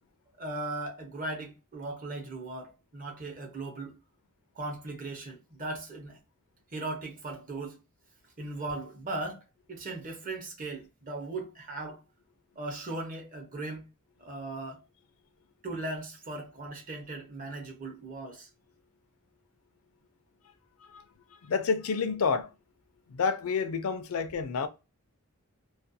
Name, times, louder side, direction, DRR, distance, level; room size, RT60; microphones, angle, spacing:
voice 1, 0.4-3.9 4.5-6.2 6.7-7.8 8.4-9.4 9.7-12.0 12.6-13.9 14.2-14.8 15.6-18.5, right 2 dB, 40° right, 0.7 m, -38 dB
voice 2, 21.4-22.5 23.1-24.7, left 5 dB, 75° left, 0.4 m, -29 dB
2.4 x 2.2 x 2.6 m
head